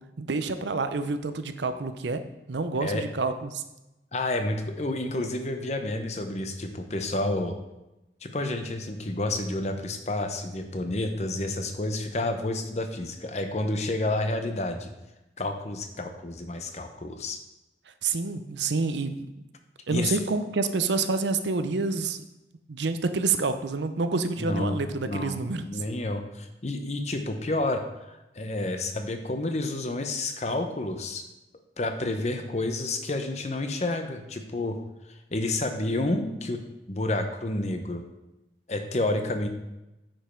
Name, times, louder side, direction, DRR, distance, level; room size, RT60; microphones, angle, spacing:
voice 1, 0.2-2.2 2.5-3.6 18.0-19.3 19.9-22.2 22.7-25.6, right 3 dB, 80° right, 10 dB, 0.6 m, -28 dB
voice 2, 4.1-7.6 8.2-14.9 15.4-17.4 19.9-20.2 24.4-24.8 25.1-31.2 31.8-34.8 35.1-36.6 36.9-38.0 38.7-39.5, left 2 dB, 40° left, 6 dB, 0.8 m, -30 dB
8.8 x 5.3 x 4.5 m, 0.96 s
head